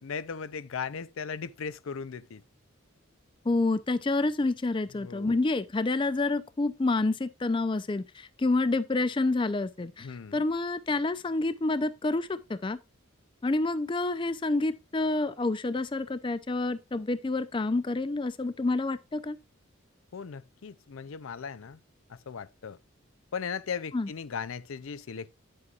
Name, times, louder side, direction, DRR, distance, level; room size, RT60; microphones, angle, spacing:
voice 1, 0.0-2.4 5.0-5.4 10.0-10.4 20.1-21.8 22.1-22.8 23.3-25.3, left 6 dB, 80° left, 0.5 m, -37 dB
voice 2, 3.5-12.8 13.4-19.4 23.9-24.1, left 2 dB, 25° left, 0.4 m, -28 dB
9.7 x 7.7 x 2.4 m
head